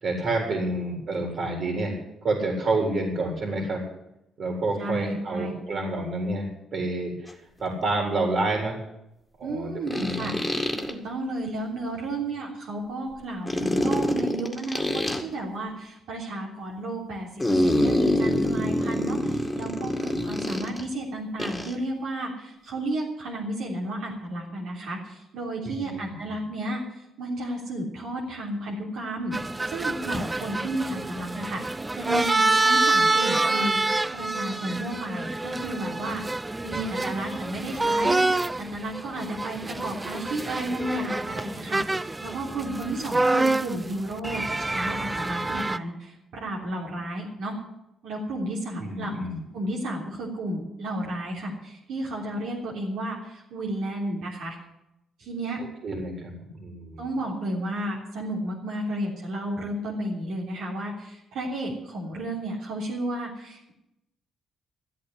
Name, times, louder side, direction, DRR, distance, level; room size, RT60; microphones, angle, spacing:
voice 1, 0.0-3.8 4.4-7.3 7.6-8.8 9.4-10.4 25.6-26.1 48.8-49.4 55.6-57.0, right 2 dB, 55° right, 1 dB, 4.1 m, -29 dB
voice 2, 4.8-5.6 9.4-10.3 10.9-31.6 31.9-36.2 36.6-47.6 48.0-49.1 49.5-54.6 55.2-55.6 57.0-63.7, right 1 dB, 80° right, -3 dB, 3.3 m, -32 dB
sound 1, 7.3-7.4 9.9-10.9 13.5-15.2 17.4-20.8 21.4-21.7, left 1 dB, 10° left, 2.1 m, -25 dB
sound 2, 29.3-45.8, right 2 dB, 15° right, 0.5 m, -27 dB
13.0 x 8.2 x 9.8 m, 0.86 s
cardioid pair, 90°, 0 cm